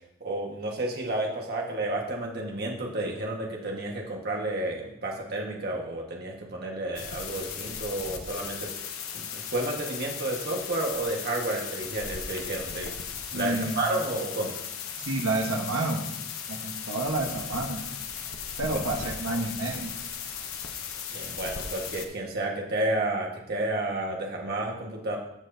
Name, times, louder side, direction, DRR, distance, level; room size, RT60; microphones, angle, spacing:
voice 1, 0.2-8.7 9.1-12.9 13.3-14.6 18.7-18.8 21.1-25.2, right 2 dB, 50° right, 0 dB, 1.6 m, -31 dB
sound 1, 7.0-22.1, left 7 dB, 70° left, 0.9 m, -37 dB
voice 2, 13.3-13.8 15.0-16.0 16.5-17.8 18.6-19.9, right 2 dB, 70° right, 2 dB, 1.3 m, -29 dB
15.0 x 6.4 x 2.8 m, 0.84 s
head